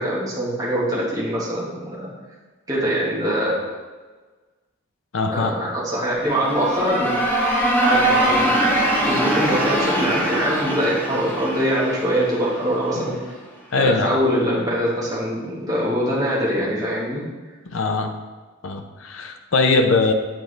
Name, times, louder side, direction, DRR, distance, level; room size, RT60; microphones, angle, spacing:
voice 1, 0.0-2.1 2.7-3.6 5.3-7.2 7.8-13.2 13.7-17.2, equal, 20° right, -7 dB, 1.4 m, -23 dB
voice 2, 5.1-5.6 13.0-13.1 13.7-14.2 17.7-18.1 18.6-20.1, left 3 dB, 80° left, 5 dB, 0.6 m, -21 dB
sound 1, 6.2-13.0, right 1 dB, 10° left, 0.9 m, -22 dB
7.6 x 4.5 x 3.3 m, 1.3 s
head